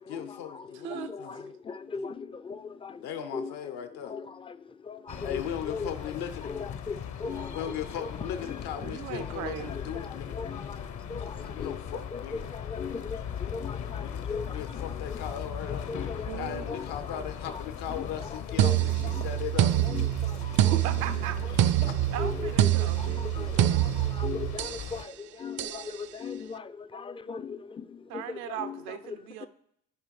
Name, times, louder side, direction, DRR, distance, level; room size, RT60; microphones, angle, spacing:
voice 1, 0.1-1.5 1.9-2.0 3.0-4.1 5.2-6.7 7.5-10.4 11.2-12.4 14.0-14.2 14.5-19.7 21.5-22.0, left 9 dB, 70° left, 1.1 m, -38 dB
voice 2, 0.9-3.0 3.3-3.5 4.1-4.6 4.8-5.9 6.5-7.6 9.7-9.8 10.3-11.8 12.1-12.2 12.5-14.6 15.9-16.4 16.7-16.9 18.0-18.1 18.6-18.8 19.2-19.3 19.9-20.7 21.8-21.9 22.2-28.8 29.4-29.5, left 5 dB, 15° left, 0.4 m, -38 dB
sound 1, 5.1-25.0, left 8 dB, 40° left, 0.8 m, -39 dB
voice 3, 8.8-10.1 16.3-16.6 20.7-21.8 22.1-24.0 28.1-29.5, right 10 dB, 80° right, 0.7 m, -38 dB
sound 2, 18.6-24.9 25.6-25.9, right 13 dB, 45° right, 0.5 m, -26 dB
14.5 x 5.1 x 3.2 m
hypercardioid pair, 50°, 42 cm